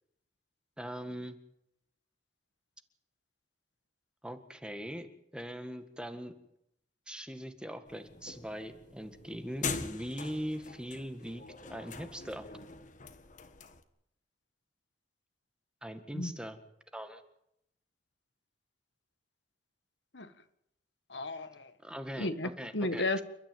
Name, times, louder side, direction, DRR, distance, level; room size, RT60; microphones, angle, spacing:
voice 1, 0.8-1.4 4.2-5.1 5.3-6.3 7.1-11.4 11.7-12.5 15.8-16.6 16.9-17.2 21.8-23.0, equal, 5° right, 7 dB, 1.7 m, -41 dB
sound 1, 7.9-13.8, left 4 dB, 45° left, 1.6 m, -43 dB
voice 2, 21.1-21.7 22.2-23.2, left 2 dB, 90° left, 9 dB, 1.6 m, -33 dB
29.0 x 12.5 x 9.2 m, 0.79 s
head